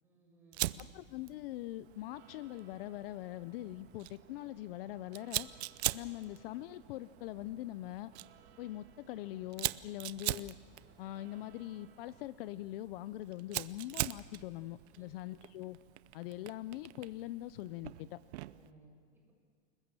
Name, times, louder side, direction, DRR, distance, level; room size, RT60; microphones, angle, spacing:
voice 1, 0.0-0.8 14.9-15.3 18.4-19.3, right 2 dB, 5° right, -3 dB, 6.8 m, -63 dB
Fire, 0.5-18.7, right 17 dB, 70° right, 0.8 m, -43 dB
voice 2, 0.8-5.5 5.9-8.1 8.6-10.5 11.0-15.8 16.1-18.2, left 15 dB, 55° left, 16 dB, 0.6 m, -43 dB
sound 1, 1.8-12.2, right 7 dB, 35° right, 2.2 m, -63 dB
29.0 x 20.0 x 7.7 m, 2.2 s
supercardioid pair, 160°, 34 cm